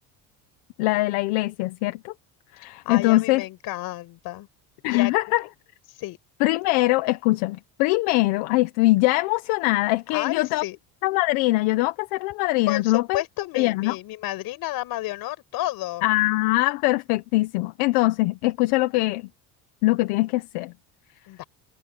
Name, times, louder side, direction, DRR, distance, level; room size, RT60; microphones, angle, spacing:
voice 1, 0.8-2.1 2.5-3.4 4.8-5.4 6.4-10.6 11.0-13.2 13.5-14.0 16.0-19.2 19.8-20.7, left 20 dB, 90° left, 1.3 m, -22 dB
voice 2, 2.6-4.5 4.9-5.1 6.0-6.2 10.1-10.8 12.7-16.0 21.3-21.5, left 16 dB, 65° left, 5.6 m, -31 dB
cardioid pair, 120°, 38 cm